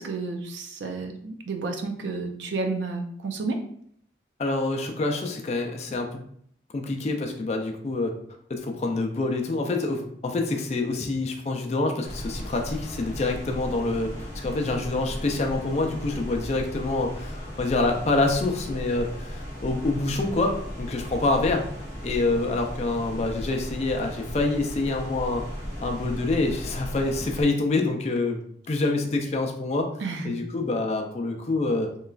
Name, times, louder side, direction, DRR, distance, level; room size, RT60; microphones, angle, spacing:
voice 1, 0.0-3.6 30.0-30.3, right 3 dB, 85° right, 5 dB, 0.4 m, -31 dB
voice 2, 4.4-6.2 6.7-8.1 8.5-21.6 22.0-25.6 25.8-29.9 30.2-31.9, left 2 dB, 35° left, 3 dB, 0.3 m, -26 dB
sound 1, 12.1-27.4, equal, 40° right, 0.9 m, -36 dB
2.9 x 2.3 x 2.3 m, 0.65 s
head